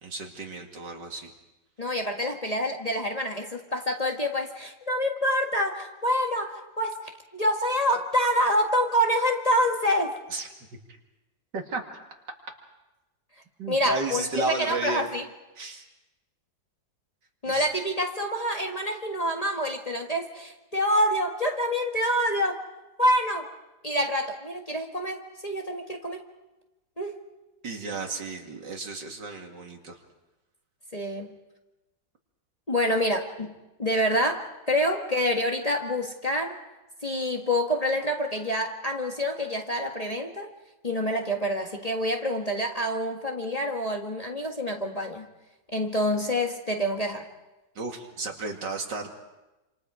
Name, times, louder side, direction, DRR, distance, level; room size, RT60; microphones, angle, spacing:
voice 1, 0.0-1.3 10.3-10.5 11.5-11.8 13.6-15.1 15.6-15.8 17.5-17.7 27.6-30.0 47.7-49.1, right 3 dB, 75° right, 2 dB, 3.0 m, -33 dB
voice 2, 1.8-7.0 7.3-10.2 13.7-15.2 17.4-22.6 23.0-23.5 23.8-26.2 27.0-27.2 30.9-31.3 32.7-33.5 33.8-36.6 37.0-40.5 40.8-45.3 45.7-47.3, equal, 20° left, 1 dB, 1.6 m, -27 dB
27.5 x 27.0 x 4.9 m, 1.0 s
omnidirectional pair, 1.9 m